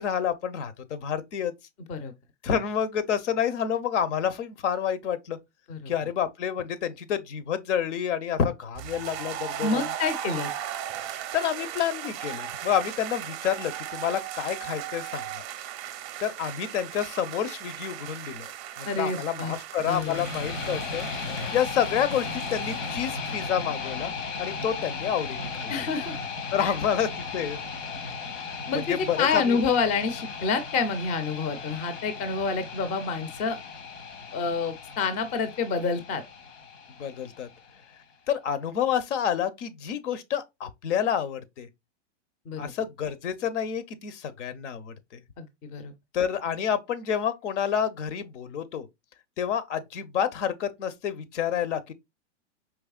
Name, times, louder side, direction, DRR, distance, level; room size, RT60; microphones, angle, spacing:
voice 1, 0.0-1.5 2.4-5.4 5.9-9.9 11.3-15.4 16.2-18.5 18.8-24.1 24.4-25.7 26.5-27.6 28.7-29.6 37.0-37.5 38.3-41.7 42.6-45.2 46.1-48.9 49.4-51.9, left 8 dB, 70° left, 0.8 m, -29 dB
sound 1, 8.7-23.3, right 11 dB, 30° right, 0.5 m, -37 dB
voice 2, 9.6-10.5 18.8-19.5 19.9-20.3 25.7-26.2 26.6-26.7 28.7-33.6 34.3-36.2 42.5-42.7 45.4-45.9, left 5 dB, 20° left, 0.5 m, -28 dB
sound 2, 19.8-37.8, left 4 dB, 90° left, 1.4 m, -36 dB
4.7 x 3.1 x 2.3 m
hypercardioid pair, 135°, 37 cm